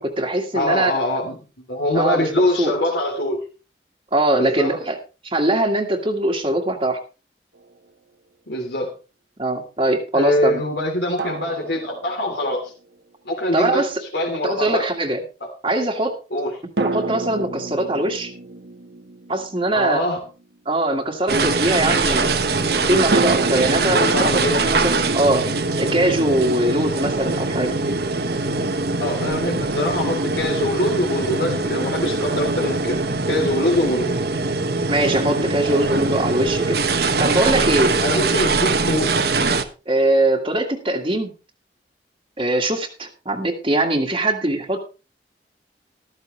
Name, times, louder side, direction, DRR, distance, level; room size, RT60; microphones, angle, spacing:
voice 1, 0.0-0.9 1.9-2.7 4.1-5.0 5.2-7.0 9.4-10.6 13.5-14.0 14.4-15.2 15.6-16.1 16.8-18.3 19.3-20.0 20.7-22.4 22.9-25.5 25.8-27.8 34.9-36.8 37.2-37.9 39.9-41.3 42.4-44.9, right 1 dB, 30° right, -2 dB, 1.8 m, -21 dB
voice 2, 0.5-1.3 1.7-3.5 4.4-4.8 8.5-8.9 10.1-12.7 13.2-14.9 15.4-15.5 16.3-16.6 19.7-20.2 23.7-24.7 29.0-33.0 33.3-34.2 38.0-39.2, left 1 dB, 75° left, -2 dB, 3.3 m, -23 dB
sound 1, 7.6-7.7 11.2-12.7 16.8-20.4 23.1-25.9, right 3 dB, 75° right, 1.1 m, -29 dB
sound 2, 21.3-39.6, right 3 dB, 60° right, 1.3 m, -22 dB
14.0 x 13.5 x 3.2 m, 0.32 s
head